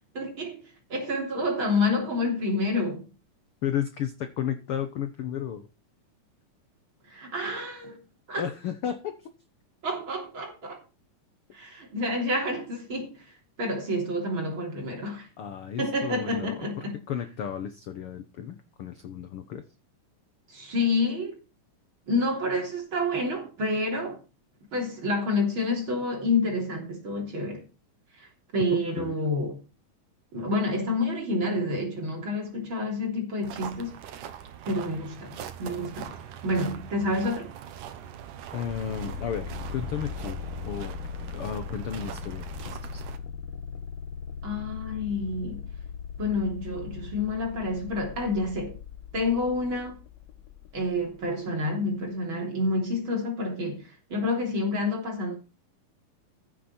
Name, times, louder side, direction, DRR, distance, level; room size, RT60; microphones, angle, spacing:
voice 1, 0.1-0.6 0.9-3.1 7.1-8.0 8.3-8.4 9.8-10.8 11.5-13.2 13.6-15.3 15.8-17.0 20.5-21.4 22.1-24.2 24.7-27.6 28.2-28.3 28.5-29.6 30.3-33.9 34.7-36.1 36.4-37.5 44.4-45.6 46.2-48.8 49.1-50.0 50.7-55.3, left 2 dB, 40° right, 3.9 m, -28 dB
voice 2, 3.6-5.7 8.4-9.3 15.4-19.6 28.7-29.1 38.5-43.0, left 9 dB, 65° left, 1.4 m, -34 dB
sound 1, 33.4-43.2, right 9 dB, 75° right, 2.6 m, -41 dB
sound 2, 38.7-51.3, left 7 dB, 90° left, 2.5 m, -39 dB
15.0 x 8.5 x 4.4 m
omnidirectional pair, 3.8 m